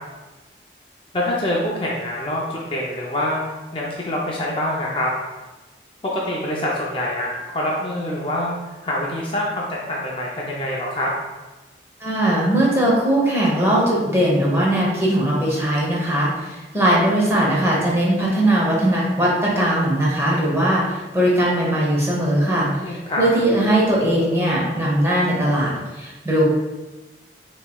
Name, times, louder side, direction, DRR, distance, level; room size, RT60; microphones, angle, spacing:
voice 1, 1.1-5.1 6.0-11.1 22.8-23.3, left 1 dB, 30° left, -3 dB, 0.5 m, -25 dB
voice 2, 12.0-26.4, right 1 dB, 15° right, -5 dB, 1.0 m, -19 dB
6.5 x 3.0 x 2.3 m, 1.2 s
head